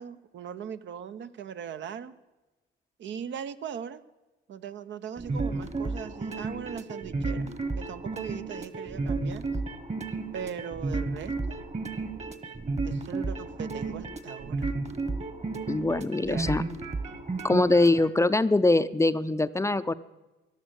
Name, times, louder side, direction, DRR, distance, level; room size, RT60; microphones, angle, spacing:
voice 1, 0.0-2.2 3.0-4.0 4.5-7.5 7.8-9.5 10.3-11.6 12.8-14.7 16.2-16.5, right 8 dB, 70° right, 11 dB, 0.8 m, -39 dB
sound 1, 5.2-18.1, right 3 dB, 35° right, 1.5 m, -32 dB
voice 2, 15.7-16.6 17.4-19.9, left 2 dB, 15° left, 13 dB, 0.5 m, -23 dB
14.0 x 11.5 x 8.0 m, 1.1 s
cardioid pair, 90°, 20 cm